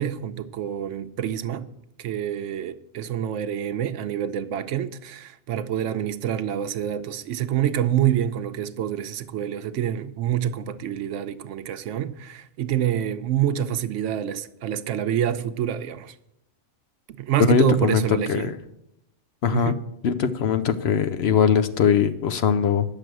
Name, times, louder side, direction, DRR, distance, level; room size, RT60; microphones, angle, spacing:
voice 1, 0.0-1.7 2.0-16.1 17.2-18.5 19.5-19.8, right 10 dB, 90° right, 1.0 m, -27 dB
voice 2, 17.4-18.0 18.3-18.6 19.4-19.8 20.0-22.9, left 7 dB, 65° left, 0.8 m, -21 dB
9.7 x 6.7 x 7.6 m
omnidirectional pair, 1.2 m